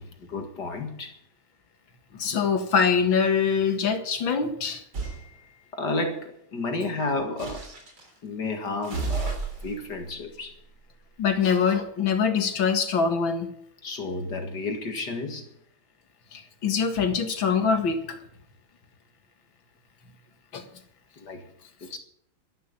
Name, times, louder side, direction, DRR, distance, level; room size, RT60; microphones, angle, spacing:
voice 1, 0.3-1.2 4.4-4.5 5.7-7.6 8.2-10.5 13.8-15.5 21.2-21.4 21.8-22.0, left 2 dB, 60° left, 5 dB, 2.4 m, -31 dB
voice 2, 2.1-5.1 11.2-13.5 16.3-18.2 20.5-20.6, left 6 dB, 75° left, 7 dB, 2.6 m, -24 dB
sound 1, 4.9-5.2 7.4-8.1 8.8-11.5, right 4 dB, 80° right, 4.5 m, -34 dB
12.5 x 11.5 x 6.9 m, 0.73 s
omnidirectional pair, 2.2 m